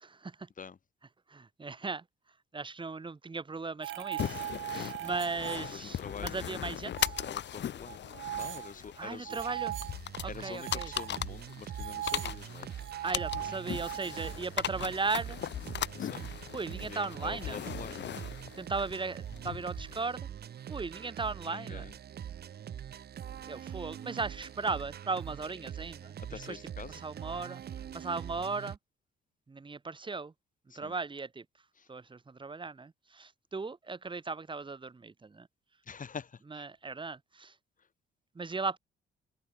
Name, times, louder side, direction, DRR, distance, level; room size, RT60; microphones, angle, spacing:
voice 1, 0.0-0.5 1.3-2.0 2.5-4.4 4.7-7.1 9.0-9.8 10.2-10.9 13.0-15.4 16.5-17.6 18.6-20.3 20.7-21.8 23.5-26.2 26.5-26.6 27.0-27.6 27.9-28.8 29.5-30.3 30.7-31.4 31.9-35.5 36.5-37.5 38.4-38.8, right 4 dB, 25° right, 2.1 m, -37 dB
sound 1, 3.8-6.1 6.4-7.3 7.9-10.0 10.4-14.4, right 14 dB, 75° right, 1.2 m, -40 dB
sound 2, 4.2-20.0, left 10 dB, 65° left, 2.3 m, -39 dB
voice 2, 5.7-6.6 7.2-8.1 8.3-9.4 10.3-12.7 16.0-16.3 16.7-18.2 21.4-21.9 26.2-27.0 30.7-31.0 31.8-31.9 35.8-36.7 37.8-37.9, left 6 dB, 40° left, 4.3 m, -46 dB
sound 3, 9.4-28.8, right 9 dB, 55° right, 1.0 m, -43 dB
open air
cardioid pair, 90°, 20 cm